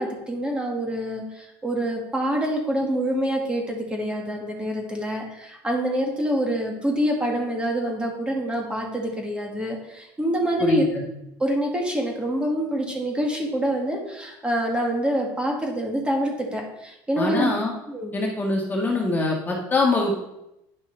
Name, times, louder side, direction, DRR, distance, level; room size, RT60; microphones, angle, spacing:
voice 1, 0.0-10.8 11.4-17.5 17.9-18.2, right 1 dB, 10° right, 0 dB, 1.6 m, -26 dB
voice 2, 10.6-11.0 17.2-17.7 18.1-20.2, left 3 dB, 20° left, -1 dB, 1.5 m, -23 dB
9.9 x 5.5 x 3.3 m, 0.86 s
cardioid pair, 120°, 8 cm